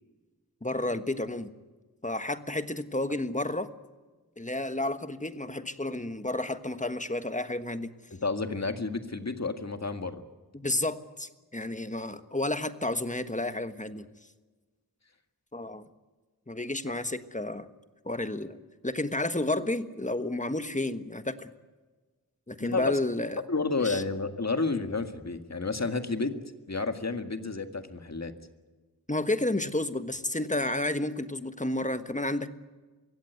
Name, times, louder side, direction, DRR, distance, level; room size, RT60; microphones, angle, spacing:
voice 1, 0.6-1.5 2.0-3.7 4.4-7.9 10.5-14.1 15.5-15.9 16.5-17.7 18.0-21.5 22.5-23.4 23.8-24.0 29.1-32.5, left 2 dB, 20° left, 10 dB, 1.4 m, -31 dB
voice 2, 8.1-10.2 22.6-23.0 23.5-26.3 26.7-28.3, left 3 dB, 50° left, 7 dB, 1.9 m, -31 dB
24.0 x 16.5 x 9.5 m, 1.3 s
wide cardioid pair, 70°, 35 cm